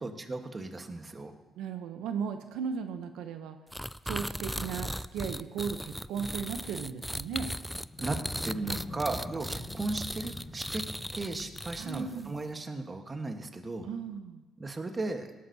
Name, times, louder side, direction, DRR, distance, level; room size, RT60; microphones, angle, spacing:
voice 1, 0.0-1.3 8.0-13.9 14.6-15.3, right 2 dB, 30° right, 6 dB, 1.3 m, -36 dB
voice 2, 1.6-3.6 4.0-7.5 11.8-12.3 13.8-14.4, right 6 dB, 90° right, 8 dB, 0.7 m, -36 dB
sound 1, 3.7-12.2, equal, ahead, 0.3 m, -37 dB
sound 2, 7.7-12.6, left 1 dB, 25° left, 4.3 m, -46 dB
18.0 x 12.5 x 2.8 m, 1.1 s
cardioid pair, 90°, 0 cm